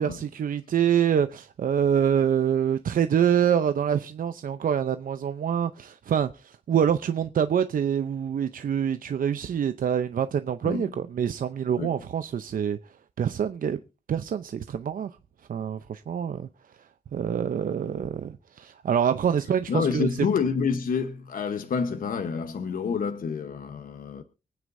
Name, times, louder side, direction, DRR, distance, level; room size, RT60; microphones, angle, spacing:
voice 1, 0.0-12.8 13.2-13.8 14.1-15.1 15.5-16.5 17.1-20.1, right 8 dB, 70° right, 0.7 m, -26 dB
voice 2, 19.7-24.2, left 6 dB, 75° left, 1.1 m, -28 dB
24.5 x 9.5 x 2.7 m
wide cardioid pair, 130°, 15 cm